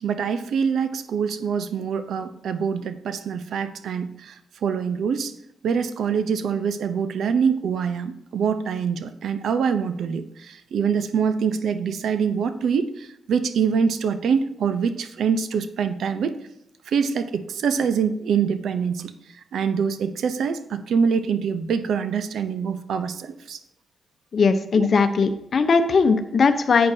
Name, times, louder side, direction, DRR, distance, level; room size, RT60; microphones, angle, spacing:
voice 1, 0.0-5.3 5.6-16.4 16.9-19.1 19.5-23.6 24.7-24.9, right 6 dB, 80° right, 10 dB, 0.8 m, -25 dB
voice 2, 24.3-26.9, left 4 dB, 55° left, 9 dB, 0.9 m, -19 dB
11.0 x 8.7 x 2.8 m, 0.82 s
cardioid pair, 85°, 0 cm